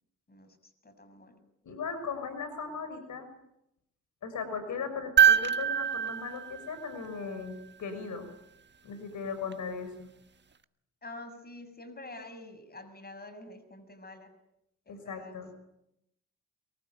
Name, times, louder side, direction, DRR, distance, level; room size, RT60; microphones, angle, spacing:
voice 1, 0.8-1.4 11.0-14.3 14.9-15.4, left 2 dB, 30° left, 11 dB, 6.9 m, -47 dB
voice 2, 1.6-3.3 4.2-8.3 8.8-10.1 14.9-15.5, left 5 dB, 70° left, 9 dB, 6.0 m, -38 dB
sound 1, 5.2-7.5 9.5-9.6, right 8 dB, 35° right, 1.6 m, -25 dB
24.5 x 23.5 x 9.3 m, 0.81 s
supercardioid pair, 60°, 31 cm